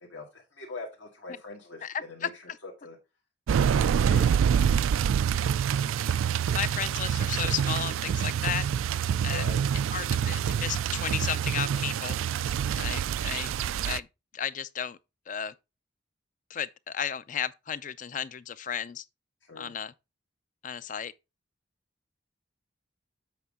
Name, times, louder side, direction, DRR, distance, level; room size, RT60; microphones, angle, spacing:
voice 1, 0.0-3.0 3.9-4.3 9.3-9.6 12.7-13.1 19.4-19.7, left 2 dB, 75° left, 1.7 m, -42 dB
voice 2, 1.8-2.3 6.5-8.7 9.2-9.4 9.9-12.2 12.8-13.5 13.9-14.1 14.3-15.0 15.3-15.5 16.5-19.0 19.6-19.9 20.6-21.1, left 8 dB, 40° left, 0.4 m, -33 dB
sound 1, 3.5-14.0, right 8 dB, 90° right, 0.3 m, -26 dB
8.2 x 5.4 x 3.6 m
head